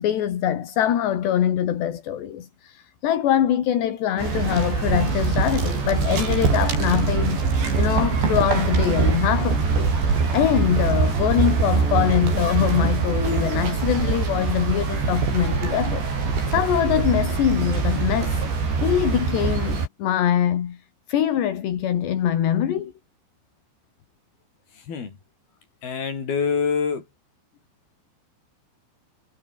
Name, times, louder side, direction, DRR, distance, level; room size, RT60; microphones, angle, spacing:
voice 1, 0.0-7.4 7.8-16.0 16.5-18.5 18.8-20.8 21.1-22.9, left 10 dB, 75° left, 4.6 m, -23 dB
sound 1, 4.2-19.9, right 5 dB, 80° right, 9.6 m, -23 dB
voice 2, 24.9-25.2 25.8-27.1, left 6 dB, 60° left, 7.1 m, -25 dB
omnidirectional pair, 4.9 m